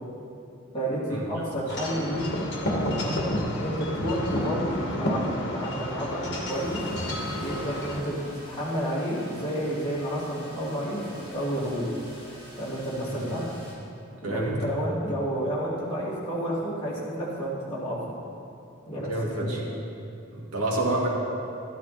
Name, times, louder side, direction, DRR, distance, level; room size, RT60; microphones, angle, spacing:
voice 1, 0.7-2.3 2.9-3.2 3.6-6.9 7.4-8.1 8.5-11.0 11.3-11.9 12.5-13.4 14.2-18.1 18.9-19.1 19.4-19.6, equal, 25° left, -8 dB, 3.1 m, -30 dB
Wind chime / Wind, 1.7-8.0, left 1 dB, 50° left, 2.0 m, -30 dB
sound 1, 6.5-13.7, equal, 20° right, 3.5 m, -45 dB
voice 2, 14.2-14.6 14.9-15.0 18.9-19.6 20.3-21.1, right 1 dB, 90° right, -2 dB, 2.2 m, -28 dB
14.0 x 11.5 x 4.3 m, 2.8 s
head